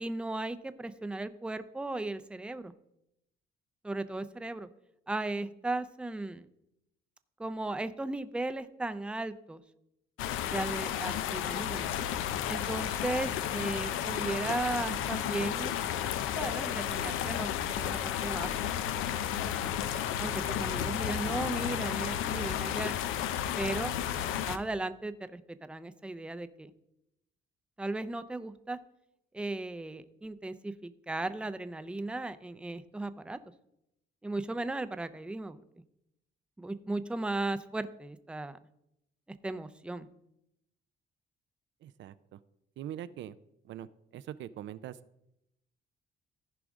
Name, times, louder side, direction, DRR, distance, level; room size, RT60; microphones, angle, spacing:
voice 1, 0.0-2.7 3.8-4.7 5.1-6.5 7.4-9.6 10.4-11.9 12.5-15.7 16.3-18.5 18.8-18.9 20.2-22.9 23.6-23.9 24.4-26.7 27.8-28.8 29.3-33.4 34.2-35.6 36.6-38.6 39.4-40.1, right 2 dB, 5° right, 12 dB, 0.5 m, -36 dB
sound 1, 10.2-24.6, left 10 dB, 90° left, 0.5 m, -32 dB
voice 2, 41.8-42.4 42.8-43.4 43.6-45.0, right 11 dB, 70° right, 14 dB, 0.4 m, -43 dB
14.5 x 5.0 x 3.6 m, 0.82 s
cardioid pair, 90°, 20 cm